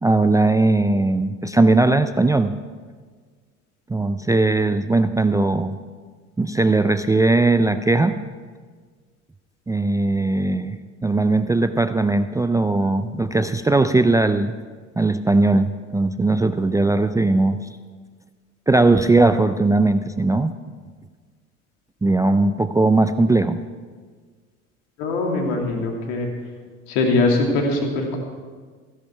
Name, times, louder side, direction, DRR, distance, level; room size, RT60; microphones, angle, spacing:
voice 1, 0.0-2.5 3.9-5.8 6.4-8.2 9.7-14.5 15.0-17.7 18.7-20.5 22.0-23.6, right 2 dB, 10° right, 10 dB, 0.4 m, -19 dB
voice 2, 25.0-26.3 26.9-28.2, left 2 dB, 70° left, 1 dB, 2.6 m, -21 dB
15.5 x 11.0 x 4.5 m, 1.5 s
hypercardioid pair, 65°, 38 cm